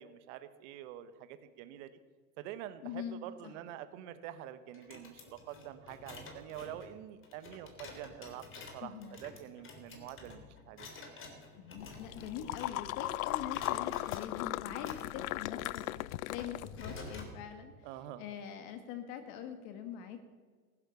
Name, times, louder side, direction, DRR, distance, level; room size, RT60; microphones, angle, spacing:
voice 1, 0.0-1.9 2.4-8.5 8.7-10.9 17.8-18.2, right 11 dB, 55° right, 11 dB, 1.2 m, -46 dB
voice 2, 2.8-3.5 8.8-9.2 11.6-15.8 16.3-17.7 18.2-20.3, left 8 dB, 50° left, 8 dB, 1.7 m, -43 dB
sound 1, 4.7-13.0 13.3-14.3 14.7-17.3, left 3 dB, 30° left, 3.4 m, -50 dB
sound 2, 11.8-17.1, left 17 dB, 75° left, 0.5 m, -38 dB
15.0 x 11.0 x 6.8 m, 1.5 s
hypercardioid pair, 105°, 43 cm